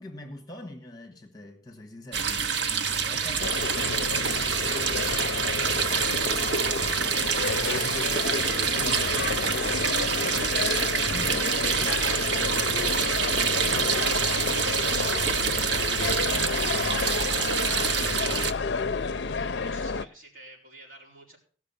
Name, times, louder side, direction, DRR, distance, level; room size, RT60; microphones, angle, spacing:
voice 1, 0.0-3.6 11.1-11.5, left 1 dB, 20° left, 1.5 m, -43 dB
sound 1, 2.1-18.5, right 6 dB, 70° right, 0.9 m, -26 dB
sound 2, 3.4-20.0, left 4 dB, 65° left, 0.5 m, -30 dB
voice 2, 19.6-21.4, right 1 dB, 50° right, 5.4 m, -50 dB
17.0 x 6.4 x 7.0 m
head